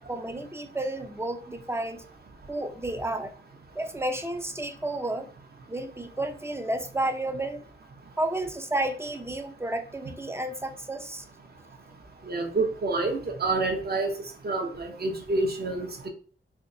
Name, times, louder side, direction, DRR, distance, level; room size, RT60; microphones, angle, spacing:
voice 1, 0.1-2.0 2.5-3.3 3.8-5.3 5.7-7.6 8.2-11.3, right 1 dB, 10° right, 7 dB, 0.5 m, -31 dB
voice 2, 12.3-14.1 14.4-16.1, right 3 dB, 50° right, 2 dB, 0.9 m, -28 dB
3.5 x 3.4 x 2.7 m, 0.42 s
wide cardioid pair, 120°, 21 cm